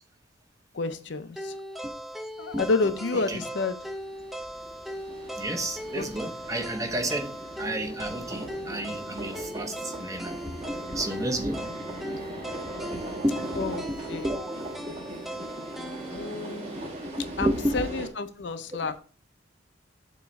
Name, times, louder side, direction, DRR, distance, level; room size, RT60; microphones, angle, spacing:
voice 1, 0.7-1.5 2.4-3.7 5.9-6.0 13.6-13.8 14.1-14.3 16.1-16.8 17.4-18.9, left 3 dB, 65° left, 0.6 m, -29 dB
sound 1, 1.4-17.5, equal, ahead, 0.4 m, -39 dB
sound 2, 3.7-18.1, right 1 dB, 35° right, 1.4 m, -39 dB
voice 2, 5.4-12.2 12.9-14.5 17.0-17.9 18.7-18.9, right 1 dB, 15° right, 0.8 m, -32 dB
7.0 x 3.1 x 5.3 m
head